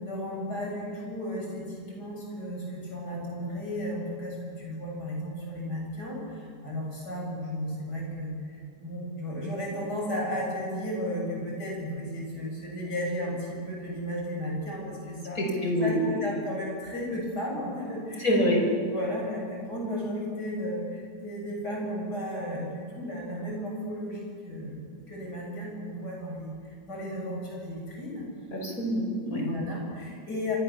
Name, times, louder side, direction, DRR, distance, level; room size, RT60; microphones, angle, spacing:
voice 1, 0.0-15.4 15.8-28.2 29.4-30.6, equal, 70° left, -2 dB, 8.1 m, -34 dB
voice 2, 15.4-16.1 18.2-18.6 28.5-29.4, equal, 55° left, 0 dB, 5.6 m, -26 dB
26.5 x 23.5 x 7.1 m, 2.2 s
omnidirectional pair, 1.8 m